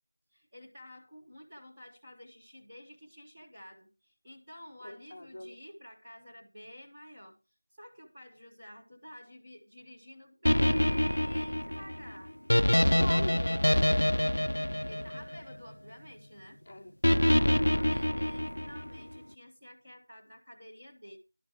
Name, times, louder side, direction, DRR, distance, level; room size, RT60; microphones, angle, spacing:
voice 1, 0.3-7.4 7.7-12.4 14.9-16.6 17.7-21.2, equal, 5° right, -8 dB, 0.9 m, -50 dB
voice 2, 4.8-5.6 13.0-13.9 16.7-17.0, left 1 dB, 20° left, 3 dB, 0.9 m, -41 dB
sound 1, 10.5-15.7 17.0-19.0, equal, 80° left, 0.5 m, -26 dB
11.5 x 4.9 x 7.5 m, 0.28 s
figure-of-eight pair, 180°, 0 cm